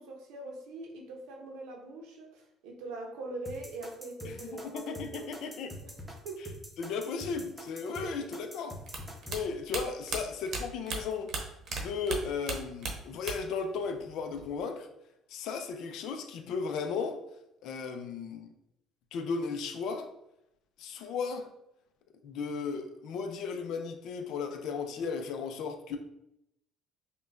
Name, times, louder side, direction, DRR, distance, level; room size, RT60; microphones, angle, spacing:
voice 1, 0.0-5.3 5.8-5.9 6.2-6.6 7.8-8.1 8.4-8.5, right 2 dB, 90° right, 0 dB, 0.7 m, -42 dB
sound 1, 3.5-9.4, left 1 dB, 5° right, 0.8 m, -45 dB
voice 2, 4.2-5.7 6.8-8.8 9.3-14.9 15.3-17.2 17.6-18.5 19.1-20.1 20.8-21.5 22.2-26.0, left 5 dB, 70° left, 5 dB, 0.5 m, -35 dB
sound 2, 8.9-11.8 12.1-13.6 13.8-14.6, right 3 dB, 55° right, 0.8 m, -36 dB
5.4 x 2.2 x 2.5 m, 0.81 s
cardioid pair, 120°, 0 cm